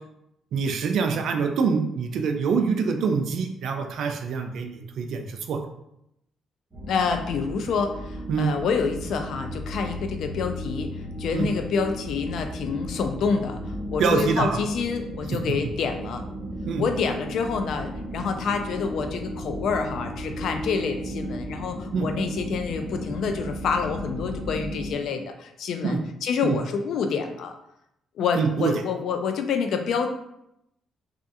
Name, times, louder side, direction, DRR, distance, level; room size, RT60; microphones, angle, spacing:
voice 1, 0.5-5.6 8.3-8.5 11.3-11.5 14.0-14.6 16.7-16.8 21.9-22.1 25.8-26.0 26.4-26.5 28.4-28.7, right 5 dB, 70° right, 5 dB, 0.3 m, -25 dB
sound 1, 6.7-24.9, equal, 20° right, 0.9 m, -35 dB
voice 2, 6.9-10.9 11.2-16.2 16.8-27.5 28.2-30.1, left 5 dB, 70° left, 6 dB, 0.3 m, -27 dB
2.3 x 2.3 x 2.7 m, 0.81 s
cardioid pair, 90°, 0 cm